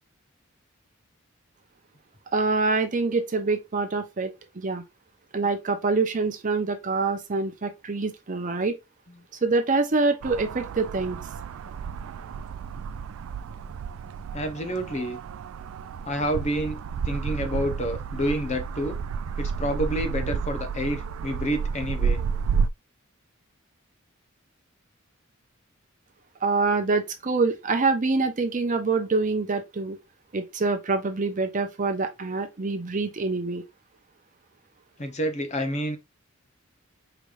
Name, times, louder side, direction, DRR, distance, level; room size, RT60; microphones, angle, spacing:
voice 1, 2.3-4.3 4.6-4.8 5.3-8.7 9.4-11.2 26.4-30.0 30.3-33.6, right 3 dB, 40° right, 0.7 m, -25 dB
sound 1, 10.2-22.7, right 6 dB, 80° right, 0.3 m, -31 dB
voice 2, 14.3-15.2 16.0-16.8 17.0-19.0 19.4-22.2 35.0-36.0, equal, 35° left, 0.8 m, -28 dB
4.9 x 3.3 x 2.5 m
head